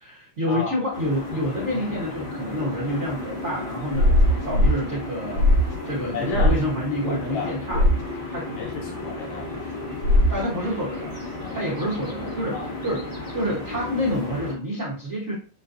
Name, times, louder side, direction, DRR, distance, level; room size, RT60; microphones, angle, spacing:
voice 1, 0.0-4.2 4.4-5.4 5.8-7.8 8.3-8.5 10.3-11.1 11.5-13.0 13.3-15.3, equal, 80° right, -5 dB, 0.6 m, -28 dB
sound 1, 0.9-14.5, left 2 dB, 25° left, 0.7 m, -34 dB
sound 2, 3.9-4.8 5.4-5.7 6.3-6.6 7.7-8.0 10.0-10.4, left 1 dB, 50° left, 3.0 m, -18 dB
voice 2, 6.1-6.5 7.0-7.9 8.4-9.5 11.4-11.6 12.5-12.7, left 3 dB, 75° left, -2 dB, 2.7 m, -32 dB
7.6 x 2.6 x 2.6 m, 0.38 s
omnidirectional pair, 3.4 m